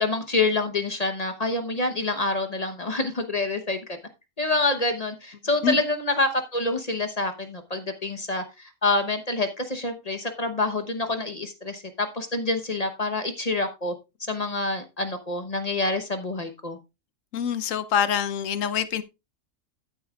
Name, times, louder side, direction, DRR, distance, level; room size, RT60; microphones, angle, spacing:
voice 1, 0.0-3.8 4.4-13.9 14.3-16.8, left 2 dB, 35° left, 1.0 m, -27 dB
voice 2, 17.3-19.0, left 8 dB, 80° left, 1.1 m, -25 dB
13.5 x 8.6 x 2.4 m
omnidirectional pair, 1.3 m